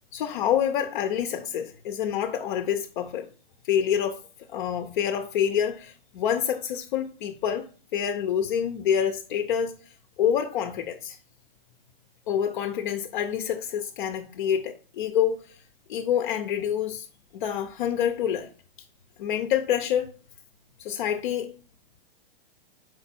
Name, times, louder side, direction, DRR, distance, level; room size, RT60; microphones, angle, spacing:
voice 1, 0.1-3.3 3.7-4.2 4.5-9.7 10.2-11.2 12.3-15.6 15.9-17.1 17.3-18.5 19.2-20.1 20.8-21.6, left 9 dB, 55° left, 0.8 m, -27 dB
5.8 x 5.2 x 4.3 m
hypercardioid pair, 145°, 29 cm